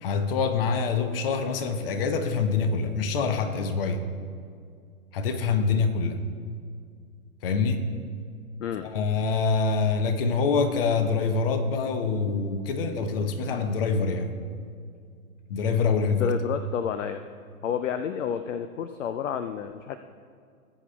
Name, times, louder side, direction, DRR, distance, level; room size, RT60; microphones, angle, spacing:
voice 1, 0.0-4.0 5.1-6.2 7.4-7.9 8.8-14.3 15.5-16.3, left 4 dB, 40° left, 8 dB, 1.0 m, -25 dB
voice 2, 16.1-17.2 17.6-20.0, left 8 dB, 55° left, 9 dB, 0.6 m, -30 dB
19.0 x 8.2 x 2.4 m, 2.2 s
figure-of-eight pair, 125°, 44 cm